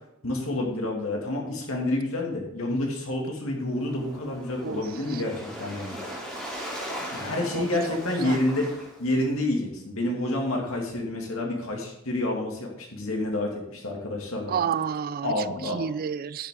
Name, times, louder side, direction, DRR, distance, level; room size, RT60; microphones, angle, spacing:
voice 1, 0.2-6.0 7.1-8.7 9.0-14.6 15.2-15.8, left 1 dB, 70° left, 2.4 m, -28 dB
Waves surf, 3.6-9.3, equal, 5° left, 3.0 m, -39 dB
voice 2, 7.5-8.4 14.5-16.5, right 7 dB, 45° right, 0.3 m, -31 dB
10.0 x 7.1 x 3.8 m
head